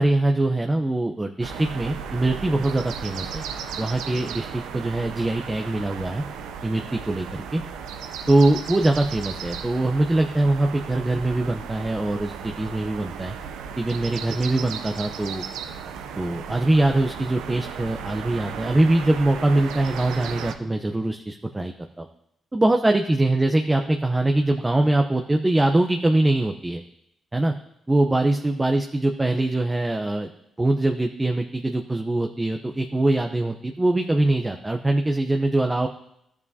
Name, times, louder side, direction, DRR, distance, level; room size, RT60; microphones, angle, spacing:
voice 1, 0.0-3.4 3.8-6.2 6.6-7.6 8.3-13.4 13.8-15.4 16.2-22.1 22.5-26.8 27.3-27.5 27.9-30.3 30.6-35.9, right 2 dB, 20° right, 4 dB, 0.7 m, -23 dB
sound 1, 1.4-20.5, right 7 dB, 85° right, 0.6 m, -35 dB
13.0 x 7.2 x 2.8 m, 0.80 s
supercardioid pair, 50°, 0 cm